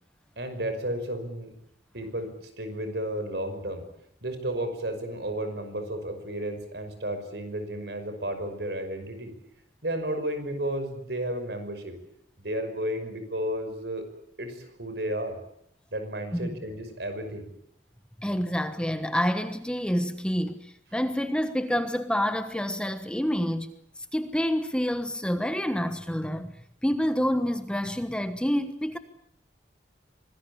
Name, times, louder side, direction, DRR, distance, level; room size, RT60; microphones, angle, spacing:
voice 1, 0.4-1.5 1.9-2.3 2.6-3.8 4.2-9.3 9.8-12.0 12.4-14.0 14.4-15.4 15.9-17.5, right 1 dB, 65° right, 5.8 m, -32 dB
voice 2, 18.2-23.7 24.1-26.5 26.8-29.0, equal, 5° left, 1.2 m, -28 dB
25.5 x 19.5 x 8.6 m
head